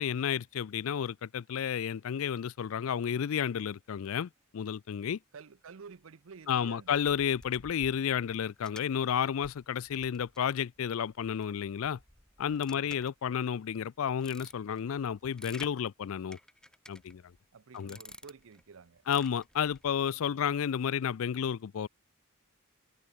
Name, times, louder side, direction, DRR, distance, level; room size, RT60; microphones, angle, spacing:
voice 1, 0.0-5.2 6.5-12.0 12.4-16.4 16.9-17.2 17.7-18.0 19.1-21.9, left 8 dB, 70° left, 0.4 m, -31 dB
voice 2, 5.3-7.0 7.9-8.5 12.7-13.1 17.5-19.0 20.2-20.4, right 5 dB, 65° right, 0.6 m, -52 dB
sound 1, 6.9-13.5 13.9-15.8 16.3-17.4 17.7-18.6 19.0-19.9, left 1 dB, 5° left, 1.5 m, -53 dB
head